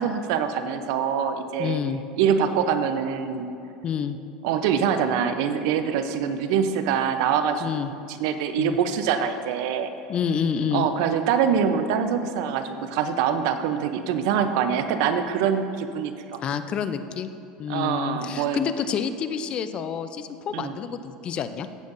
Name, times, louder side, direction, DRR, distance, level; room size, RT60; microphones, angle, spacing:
voice 1, 0.0-1.8 2.2-3.5 4.4-7.6 8.2-9.9 10.7-16.4 17.7-18.6 20.5-20.7, right 7 dB, 75° right, 9 dB, 0.6 m, -24 dB
voice 2, 1.6-2.0 3.8-4.2 7.6-7.9 8.6-8.8 10.1-10.9 16.4-17.3 17.6-21.7, left 7 dB, 40° left, 11 dB, 0.5 m, -28 dB
15.5 x 7.1 x 2.6 m, 2.6 s
supercardioid pair, 120°, 3 cm